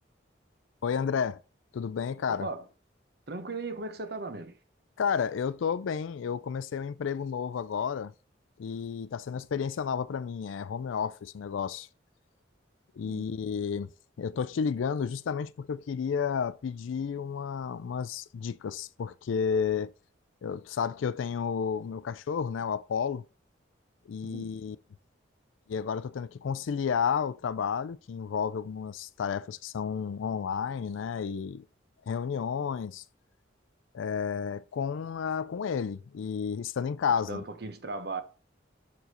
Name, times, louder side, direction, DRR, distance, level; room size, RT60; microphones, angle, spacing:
voice 1, 0.8-1.4 1.7-2.5 5.0-8.1 8.6-11.9 13.0-13.9 14.2-19.9 20.4-23.2 24.1-24.8 25.7-31.6 32.1-33.0 33.9-37.4, left 6 dB, 85° left, 0.4 m, -31 dB
voice 2, 2.3-2.6 3.3-4.6 13.0-13.3 24.2-24.6 37.2-38.2, right 3 dB, 55° right, 1.0 m, -37 dB
6.6 x 4.8 x 4.3 m
head